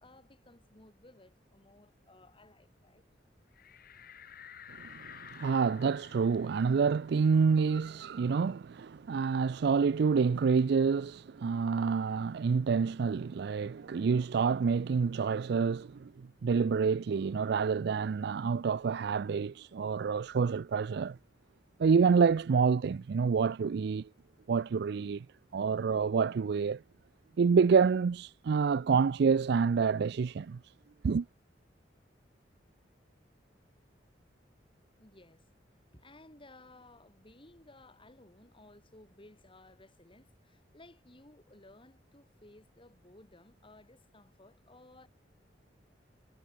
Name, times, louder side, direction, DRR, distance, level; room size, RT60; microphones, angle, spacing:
voice 1, 0.0-3.0 35.0-35.5 35.9-45.1, left 2 dB, 30° left, 5.4 m, -58 dB
sound 1, 3.5-8.7 9.1-9.2 9.5-11.2, left 8 dB, 55° left, 3.3 m, -53 dB
voice 2, 4.7-21.2 21.8-24.1 24.5-25.3 25.5-26.8 27.4-30.6 31.0-31.3, right 5 dB, 65° right, 0.4 m, -28 dB
head